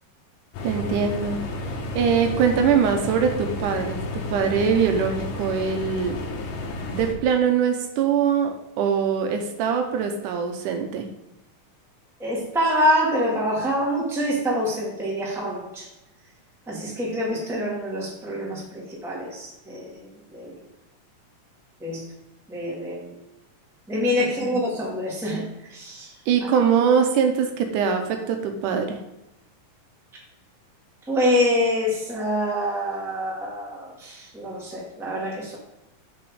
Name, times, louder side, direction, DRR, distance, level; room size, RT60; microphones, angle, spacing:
sound 1, 0.5-7.1, left 2 dB, 90° left, 2.7 m, -31 dB
voice 1, 0.6-1.4 1.9-6.2 6.9-11.1 24.4-24.6 26.3-29.0, right 7 dB, 80° right, 5 dB, 2.3 m, -22 dB
voice 2, 12.2-15.9 16.7-20.5 21.8-22.1 22.5-23.2 23.9-26.2 31.1-35.6, left 1 dB, ahead, -4 dB, 1.3 m, -26 dB
6.2 x 6.0 x 4.9 m, 0.92 s
omnidirectional pair, 3.7 m